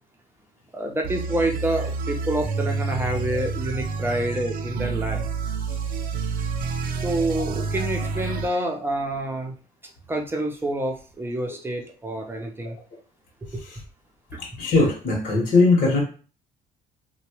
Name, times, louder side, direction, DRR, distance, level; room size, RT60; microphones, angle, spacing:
voice 1, 0.7-5.2 7.0-9.5 10.1-12.7, right 1 dB, 15° right, 1 dB, 0.6 m, -27 dB
sound 1, 1.0-8.6, right 4 dB, 60° right, 0.5 m, -28 dB
voice 2, 14.4-16.0, left 3 dB, 55° left, -3 dB, 1.1 m, -19 dB
2.9 x 2.2 x 2.9 m, 0.37 s
cardioid pair, 110°, 17 cm